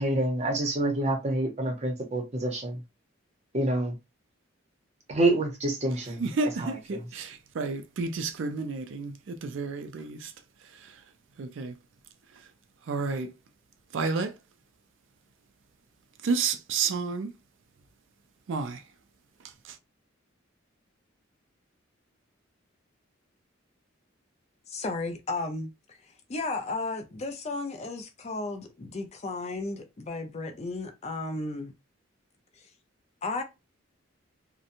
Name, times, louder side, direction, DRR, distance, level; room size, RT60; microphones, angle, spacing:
voice 1, 0.0-2.8 3.5-4.0 5.1-6.2 6.6-7.0, right 2 dB, 35° right, 0.7 m, -27 dB
voice 2, 6.2-10.3 10.7-11.0 11.4-11.7 12.9-13.3 13.9-14.3 16.2-17.3 18.5-18.8 19.6-19.8, right 4 dB, 65° right, 0.4 m, -31 dB
voice 3, 24.7-31.7 32.6-32.7 33.2-33.4, left 3 dB, 30° left, 0.4 m, -34 dB
2.8 x 2.1 x 2.5 m
head